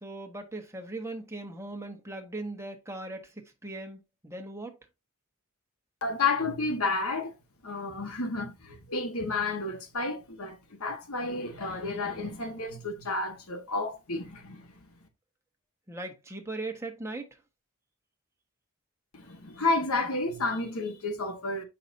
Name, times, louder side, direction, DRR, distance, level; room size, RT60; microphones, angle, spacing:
voice 1, 0.0-3.3 3.6-4.7 15.9-17.3, right 2 dB, 15° right, 1.3 m, -39 dB
voice 2, 6.0-7.3 7.6-14.9 19.1-21.6, left 3 dB, 75° left, 1.4 m, -31 dB
8.0 x 5.7 x 2.7 m
head